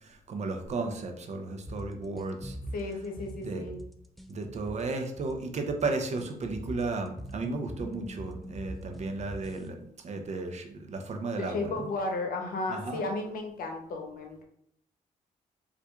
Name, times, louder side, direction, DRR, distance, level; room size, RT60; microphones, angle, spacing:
voice 1, 0.0-2.6 3.4-3.6 4.3-11.8 12.7-13.0, right 3 dB, 50° right, 5 dB, 0.6 m, -34 dB
sound 1, 1.7-9.7, right 1 dB, ahead, 0.3 m, -43 dB
voice 2, 2.7-3.8 11.4-14.4, left 2 dB, 75° left, 3 dB, 0.7 m, -34 dB
4.2 x 2.4 x 2.3 m, 0.70 s
cardioid pair, 75°, 15 cm